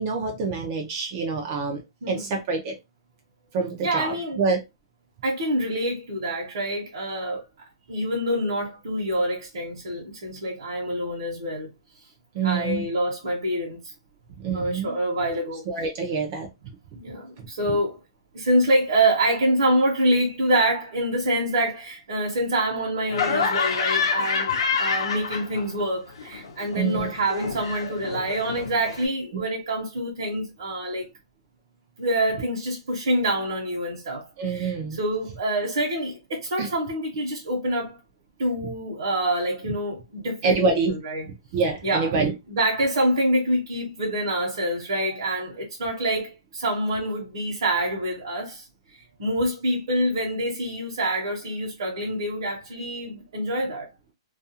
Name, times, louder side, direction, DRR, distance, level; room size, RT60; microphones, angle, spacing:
voice 1, 0.0-1.8 2.1-2.7 3.5-4.6 12.3-12.9 14.4-15.0 15.7-16.5 26.7-27.1 34.4-35.0 36.6-36.7 40.4-40.9 41.5-42.3, right 4 dB, 25° right, 0.4 m, -26 dB
voice 2, 2.0-2.3 3.8-4.4 5.2-7.4 7.9-11.7 12.4-13.9 14.5-15.6 16.9-18.0 18.3-31.1 32.0-38.0 38.4-40.6 40.9-41.3 41.8-42.1 42.5-48.6 48.9-53.9, right 1 dB, 55° right, 0.9 m, -26 dB
Laughter, 23.1-25.9 26.1-29.1, left 5 dB, 65° left, 0.7 m, -27 dB
2.4 x 2.2 x 2.7 m
hypercardioid pair, 175°, 3 cm